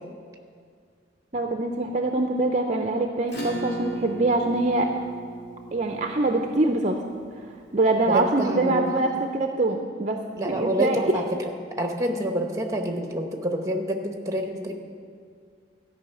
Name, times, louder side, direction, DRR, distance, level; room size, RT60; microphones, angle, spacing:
voice 1, 1.3-4.9 5.7-7.0 7.7-10.2 10.5-11.2, right 2 dB, 40° right, 3 dB, 0.5 m, -24 dB
Acoustic guitar / Strum, 3.3-8.2, right 1 dB, 70° left, 3.1 m, -37 dB
voice 2, 8.1-8.9 10.4-14.7, equal, 15° right, 4 dB, 1.0 m, -27 dB
12.5 x 5.6 x 8.3 m, 2.1 s
head